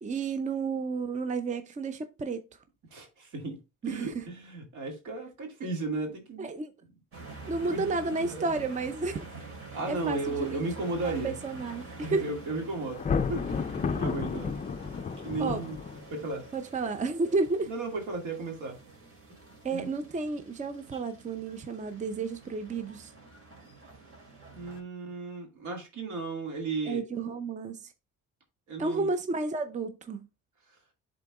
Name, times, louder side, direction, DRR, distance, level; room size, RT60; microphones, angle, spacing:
voice 1, 0.0-2.4 3.8-4.1 6.4-6.7 7.5-9.3 9.9-10.6 11.0-12.3 15.4-15.6 16.5-17.7 19.6-23.1 26.9-27.9 28.8-30.3, right 3 dB, 25° right, 0.6 m, -32 dB
voice 2, 2.9-3.6 3.8-6.5 7.4-8.5 9.7-11.3 12.0-14.5 15.2-15.8 16.1-16.4 17.6-18.8 19.7-19.9 24.5-27.0 28.7-29.1, right 3 dB, 75° right, 2.2 m, -35 dB
sound 1, 7.1-24.8, right 3 dB, 45° right, 2.6 m, -47 dB
Thunder, 12.9-16.3, left 5 dB, 25° left, 0.4 m, -31 dB
11.5 x 3.9 x 2.4 m
cardioid pair, 90°, 30 cm